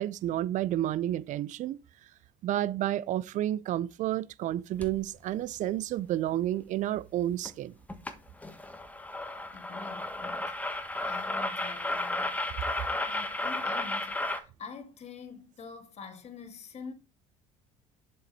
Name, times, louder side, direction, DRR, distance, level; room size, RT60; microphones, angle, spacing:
voice 1, 0.0-1.8 2.4-7.7, right 13 dB, 50° right, 0.5 m, -30 dB
sound 1, 4.8-5.0 7.5-7.6 7.9-8.1 8.4-14.4, left 2 dB, 10° left, 1.2 m, -33 dB
voice 2, 9.5-12.4 13.1-16.9, left 5 dB, 45° left, 1.8 m, -46 dB
7.4 x 5.4 x 4.2 m
hypercardioid pair, 75°, 16 cm